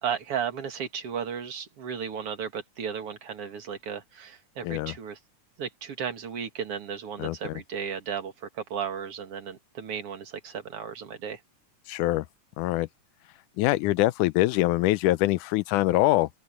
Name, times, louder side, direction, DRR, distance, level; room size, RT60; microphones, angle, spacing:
voice 1, 0.0-5.2 5.6-11.4, right 7 dB, 50° right, 2.7 m, -34 dB
voice 2, 4.6-5.0 7.2-7.4 11.9-12.3 12.6-12.9 13.6-16.3, left 17 dB, 85° left, 2.1 m, -24 dB
open air
omnidirectional pair, 3.5 m